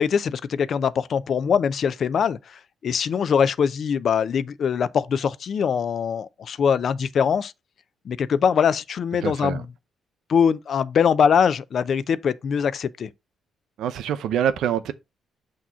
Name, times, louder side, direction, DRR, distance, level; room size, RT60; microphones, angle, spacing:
voice 1, 0.0-7.5 8.1-9.6 10.3-13.1, left 7 dB, 55° left, 0.5 m, -22 dB
voice 2, 9.2-9.6 13.8-14.9, right 9 dB, 80° right, 0.7 m, -25 dB
6.0 x 2.9 x 5.6 m
cardioid pair, 90°, 0 cm